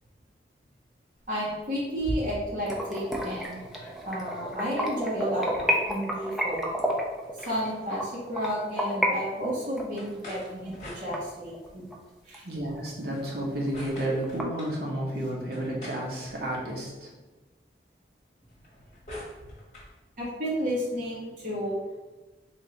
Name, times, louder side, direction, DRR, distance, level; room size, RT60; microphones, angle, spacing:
sound 1, 1.2-2.7 3.2-3.3 3.4-4.6 6.2-8.0 10.0-11.7 13.0-14.8 15.5-16.9 18.4-19.9, equal, 40° left, 1.2 m, -43 dB
voice 1, 1.3-3.6 4.0-6.7 7.4-11.9 12.2-12.4 20.2-21.8, equal, 45° right, -5 dB, 1.3 m, -32 dB
sound 2, 2.6-9.1 9.4-11.9 12.3-12.4 12.9-13.0 13.3-13.4 13.7-14.4, equal, ahead, 0.4 m, -31 dB
voice 2, 12.4-17.1, right 1 dB, 65° right, -2 dB, 1.0 m, -31 dB
3.5 x 2.6 x 4.4 m, 1.1 s
head